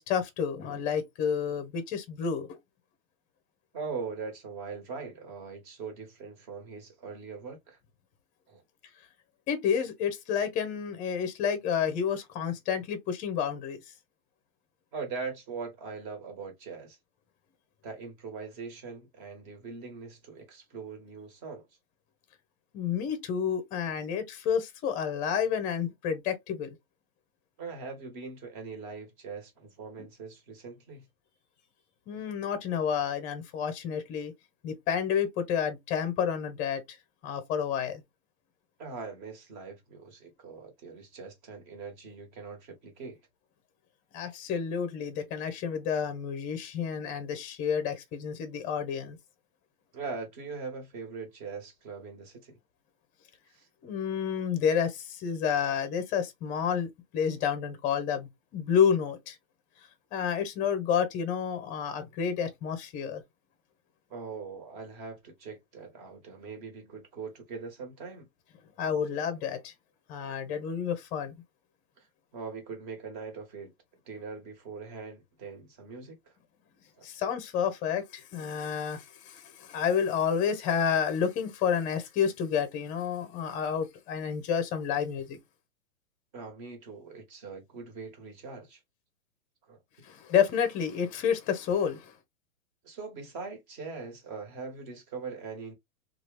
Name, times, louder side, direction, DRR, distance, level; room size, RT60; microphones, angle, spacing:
voice 1, 0.0-2.6 9.5-13.8 22.7-26.7 30.0-30.1 32.1-34.3 34.6-37.0 37.2-38.0 44.1-49.2 53.8-59.4 60.1-63.2 68.8-69.7 70.1-71.3 77.0-85.4 90.0-92.1, left 7 dB, 20° left, 0.6 m, -30 dB
voice 2, 3.7-7.8 8.5-8.6 14.9-17.0 17.8-21.7 27.6-31.0 38.8-43.2 49.9-52.6 53.5-53.7 64.1-68.3 72.0-72.1 72.3-73.7 74.0-76.2 77.0-77.1 86.3-88.8 89.7-90.0 92.8-95.7, right 4 dB, 35° right, 1.5 m, -41 dB
2.9 x 2.4 x 3.3 m
hypercardioid pair, 140°, 42 cm